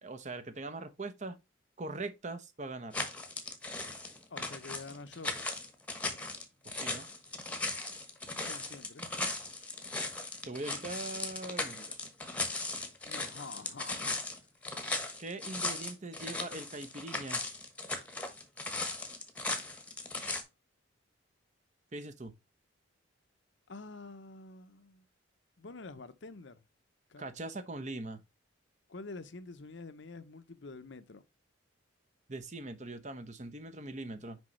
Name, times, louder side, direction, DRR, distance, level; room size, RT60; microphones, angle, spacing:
voice 1, 0.0-1.4 1.8-3.0 6.6-7.1 10.4-11.8 15.2-17.4 21.9-22.3 27.2-28.2 32.3-34.4, right 2 dB, 35° right, 0.8 m, -41 dB
sound 1, 2.9-20.4, left 2 dB, 5° left, 1.1 m, -37 dB
voice 2, 4.3-5.3 8.4-9.1 13.0-14.2 23.7-25.1 25.6-26.6 27.1-27.2 28.9-31.2, left 3 dB, 60° left, 0.8 m, -47 dB
6.3 x 5.2 x 3.1 m
head